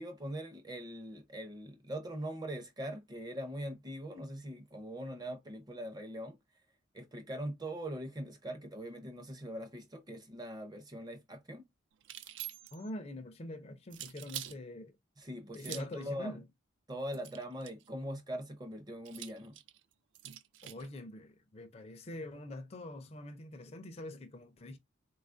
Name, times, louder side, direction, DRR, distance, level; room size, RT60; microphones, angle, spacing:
voice 1, 0.0-6.4 6.9-11.6 15.2-16.4 16.9-19.6, equal, 20° right, 0.6 m, -42 dB
sound 1, 12.0-12.9 13.9-14.6 15.5-16.0 17.1-17.9 19.1-20.9, right 13 dB, 60° right, 0.3 m, -46 dB
voice 2, 12.7-14.9 15.5-16.4 20.6-24.8, left 1 dB, 30° left, 0.4 m, -44 dB
3.9 x 2.4 x 2.4 m
head